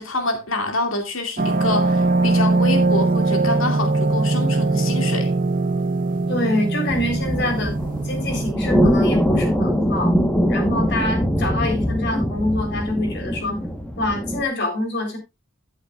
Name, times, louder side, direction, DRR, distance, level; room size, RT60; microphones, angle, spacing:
voice 1, 0.0-5.3, left 2 dB, 70° left, 2.4 m, -26 dB
sound 1, 1.4-8.5, right 2 dB, 40° right, 0.6 m, -21 dB
voice 2, 6.3-7.8 8.0-10.1 10.5-13.6 14.0-15.2, left 1 dB, 55° left, 3.7 m, -25 dB
sound 2, 6.9-14.4, equal, 5° left, 1.2 m, -22 dB
15.5 x 8.1 x 2.4 m
head